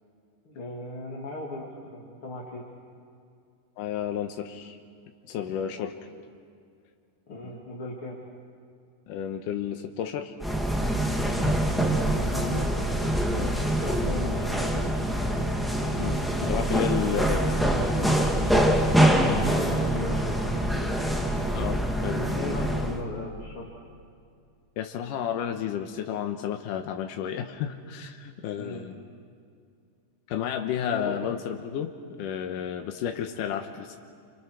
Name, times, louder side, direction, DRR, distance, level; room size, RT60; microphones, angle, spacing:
voice 1, 0.4-2.6 7.3-8.2 11.4-11.6 12.1-12.7 12.9-15.5 17.0-18.5 19.3-20.9 22.1-23.7 28.6-28.8 30.8-31.1, left 2 dB, 45° left, -4 dB, 3.2 m, -38 dB
voice 2, 3.8-4.8 5.3-5.9 7.4-7.5 9.1-10.3 16.0-17.4 17.7-18.1 21.5-22.5 24.8-29.0 30.3-31.9 32.2-34.0, left 9 dB, 90° left, 5 dB, 2.6 m, -32 dB
sound 1, 10.4-23.0, right 1 dB, ahead, 0.8 m, -25 dB
29.5 x 26.5 x 6.3 m, 2.3 s
omnidirectional pair, 3.7 m